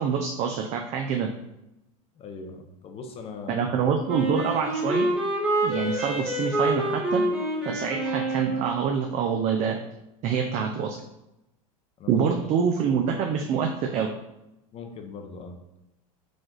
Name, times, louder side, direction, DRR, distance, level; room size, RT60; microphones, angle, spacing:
voice 1, 0.0-1.3 3.5-5.1 5.6-7.2 7.7-9.8 10.2-11.0 12.1-14.1, right 6 dB, 40° right, 3 dB, 0.4 m, -26 dB
voice 2, 2.2-3.7 12.0-12.3 14.7-15.6, left 4 dB, 30° left, 5 dB, 0.7 m, -40 dB
Wind instrument woodwind instrument, 4.1-8.8, right 1 dB, 5° right, 1.3 m, -27 dB
4.9 x 2.4 x 3.8 m, 0.90 s
supercardioid pair, 115°, 18 cm